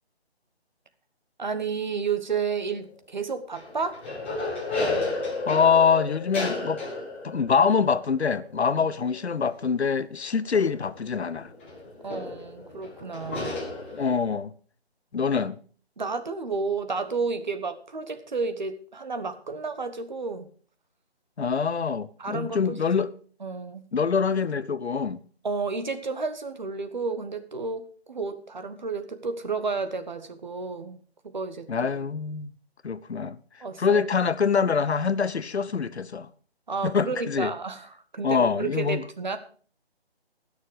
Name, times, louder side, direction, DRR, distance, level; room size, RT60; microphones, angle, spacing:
voice 1, 1.4-4.0 8.8-8.9 12.0-13.6 16.0-20.5 22.2-22.7 23.4-23.8 25.4-31.0 31.3-31.9 33.6-34.0 36.7-39.4, right 4 dB, 45° right, 1.2 m, -31 dB
sound 1, 2.3-2.8 3.5-14.4, left 3 dB, 10° left, 1.4 m, -33 dB
voice 2, 5.5-6.8 7.2-11.5 13.9-14.5 15.1-15.6 21.4-23.1 23.9-25.2 31.7-32.5 32.8-36.3 36.8-37.5 38.2-39.1, left 6 dB, 90° left, 0.8 m, -25 dB
19.5 x 6.6 x 5.0 m
figure-of-eight pair, 170°, 32 cm